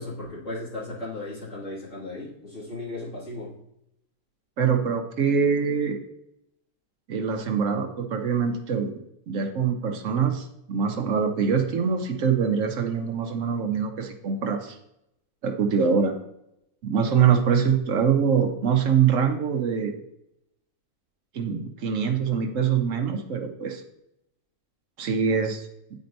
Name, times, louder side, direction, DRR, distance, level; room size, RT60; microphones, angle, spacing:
voice 1, 0.0-3.5, left 2 dB, 55° left, -6 dB, 2.5 m, -36 dB
voice 2, 4.6-6.0 7.1-8.9 9.3-14.8 15.4-16.1 16.8-19.9 21.3-23.8 25.0-25.7, right 6 dB, 65° right, 5 dB, 1.1 m, -24 dB
9.6 x 4.3 x 2.6 m, 0.81 s
omnidirectional pair, 1.5 m